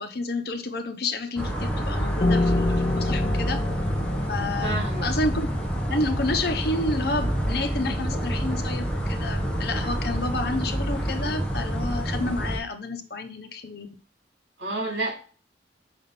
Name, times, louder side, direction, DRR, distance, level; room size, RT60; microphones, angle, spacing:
voice 1, 0.0-3.6 4.3-5.5 5.7-14.0, left 2 dB, 60° left, 6 dB, 1.0 m, -30 dB
sound 1, 1.4-12.6, equal, 5° left, 1.4 m, -28 dB
Piano, 2.2-7.5, left 3 dB, 30° left, 0.5 m, -29 dB
voice 2, 4.6-5.1 14.6-15.2, right 2 dB, 70° right, 1 dB, 2.6 m, -29 dB
6.2 x 5.7 x 3.8 m, 0.38 s
head